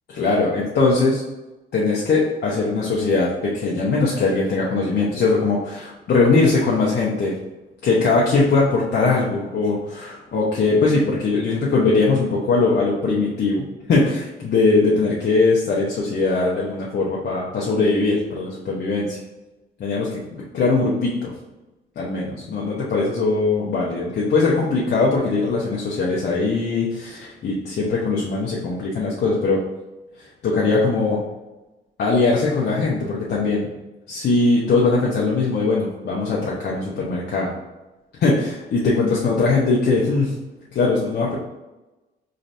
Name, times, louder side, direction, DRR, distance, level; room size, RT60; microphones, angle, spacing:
voice 1, 0.1-1.2 1.7-7.3 7.8-19.2 19.8-21.3 22.0-29.6 30.2-31.2 32.0-33.7 34.1-37.5 38.2-40.3 40.7-41.3, left 3 dB, 55° left, -4 dB, 0.8 m, -20 dB
3.9 x 3.2 x 2.7 m, 1.1 s
cardioid pair, 90°, 20 cm